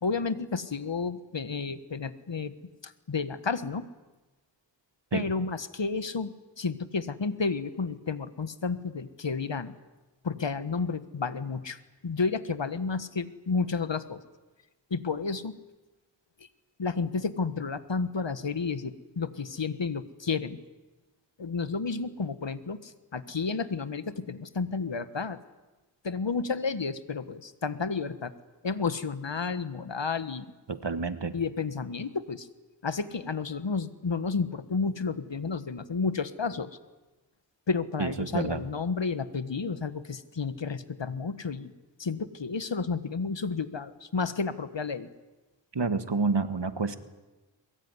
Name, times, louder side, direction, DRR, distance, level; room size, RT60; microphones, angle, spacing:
voice 1, 0.0-2.6 2.8-3.9 5.1-9.7 10.2-14.2 14.9-15.6 16.8-20.6 21.4-25.4 26.0-28.3 28.6-30.5 31.3-32.5 32.8-36.7 37.7-41.7 42.0-45.1, left 4 dB, 70° left, 12 dB, 1.5 m, -31 dB
voice 2, 30.7-31.3 38.0-38.6 45.7-47.0, right 4 dB, 65° right, 10 dB, 1.7 m, -28 dB
23.0 x 22.0 x 9.8 m, 1.1 s
wide cardioid pair, 50°, 46 cm